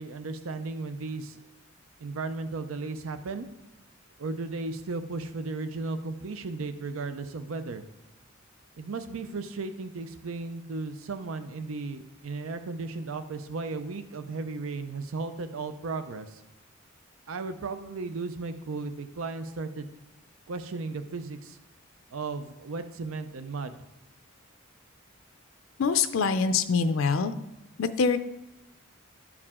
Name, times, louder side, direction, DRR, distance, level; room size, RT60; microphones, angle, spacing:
voice 1, 0.0-1.4 2.0-3.5 4.2-7.8 8.8-16.4 17.3-19.9 20.5-21.6 22.1-23.8, right 3 dB, 85° right, 10 dB, 0.6 m, -35 dB
voice 2, 25.8-27.3 27.8-28.2, left 5 dB, 75° left, 11 dB, 0.4 m, -24 dB
12.0 x 4.8 x 3.6 m, 0.90 s
head